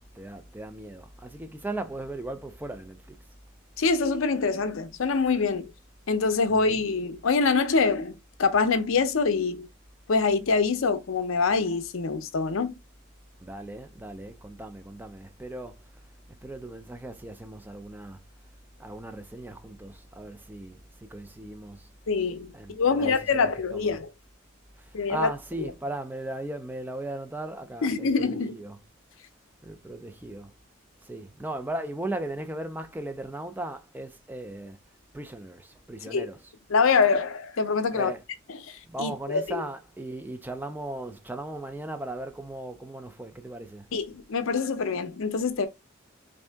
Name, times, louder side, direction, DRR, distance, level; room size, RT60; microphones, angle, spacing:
voice 1, 0.0-3.2 6.5-6.8 13.4-15.8 16.4-18.2 18.8-21.9 22.5-24.0 24.8-28.8 29.6-30.5 31.0-34.8 35.1-36.5 37.9-38.2 38.9-43.9, right 1 dB, 10° right, 0.3 m, -37 dB
voice 2, 3.8-5.7 6.1-8.1 8.4-9.7 10.1-12.8 22.1-24.1 24.9-25.3 27.8-28.6 36.1-36.3 36.7-38.1 39.0-39.6 43.9-45.7, left 4 dB, 75° left, 0.6 m, -25 dB
3.6 x 2.6 x 3.3 m
head